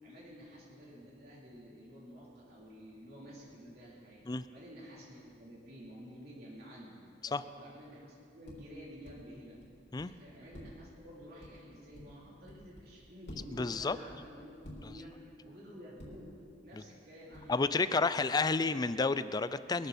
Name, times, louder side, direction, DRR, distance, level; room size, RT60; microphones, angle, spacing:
voice 1, 0.0-9.6 9.9-16.4 16.6-17.6 17.8-18.7, equal, 60° right, -6 dB, 3.5 m, -51 dB
sound 1, 0.9-1.0 5.1-5.3 7.6-7.9 8.4-9.2 9.6-10.1 10.5-12.9 13.2-15.1 16.0-16.4 17.3-17.7, equal, 75° left, 3.8 m, -51 dB
voice 2, 13.5-14.0 16.7-16.8 17.5-19.9, left 3 dB, 25° left, 14 dB, 0.4 m, -30 dB
22.0 x 14.0 x 4.3 m, 2.4 s
head